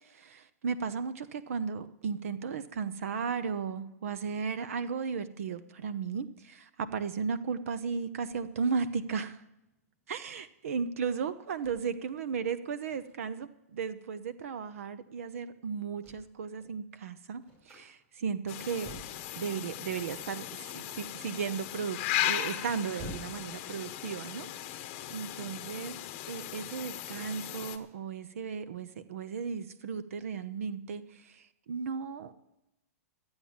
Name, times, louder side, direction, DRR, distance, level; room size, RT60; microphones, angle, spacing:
voice 1, 0.0-9.4 10.1-18.9 19.3-24.8 25.1-26.0 26.3-32.3, right 6 dB, 60° right, 13 dB, 0.8 m, -35 dB
sound 1, 8.2-23.6, right 1 dB, 20° right, 5.8 m, -53 dB
sound 2, 18.5-27.8, left 12 dB, 30° left, 1.0 m, -37 dB
13.5 x 8.8 x 8.7 m, 0.93 s
hypercardioid pair, 170°, 8 cm